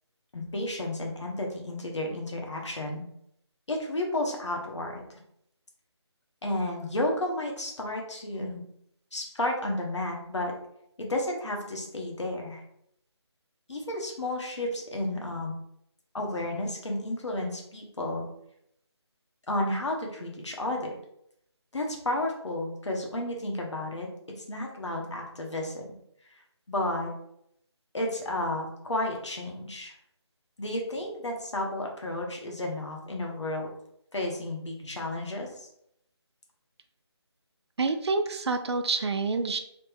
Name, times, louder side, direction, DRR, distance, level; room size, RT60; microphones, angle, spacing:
voice 1, 0.3-3.0 3.7-5.2 6.4-8.6 9.1-10.5 11.0-12.6 13.7-15.5 16.1-18.3 19.5-20.9 21.7-24.1 24.4-25.8 26.3-26.4 26.7-27.1 27.9-29.9 30.6-33.7 34.1-35.7, left 1 dB, 85° left, 1 dB, 1.0 m, -32 dB
voice 2, 37.8-39.6, right 4 dB, 70° right, 6 dB, 0.4 m, -27 dB
3.2 x 2.0 x 3.4 m, 0.74 s
figure-of-eight pair, 175°, 15 cm